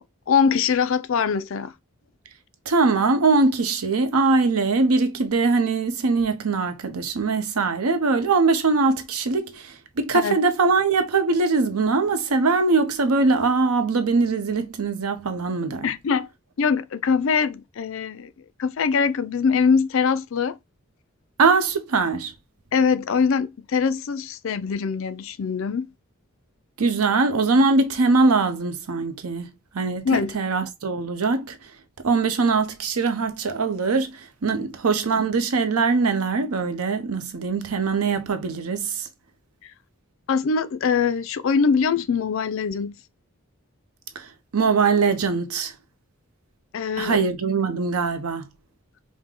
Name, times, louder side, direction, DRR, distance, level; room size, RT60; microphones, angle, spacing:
voice 1, 0.3-1.7 10.1-10.4 15.8-16.3 16.6-18.3 18.6-20.6 22.7-25.9 30.0-30.4 40.3-43.0 46.7-47.2, left 6 dB, 65° left, 0.4 m, -22 dB
voice 2, 2.7-15.9 21.4-22.3 26.8-31.6 32.0-39.1 44.2-44.3 44.5-45.7 47.0-48.5, right 4 dB, 90° right, 0.7 m, -22 dB
4.9 x 2.1 x 3.7 m
head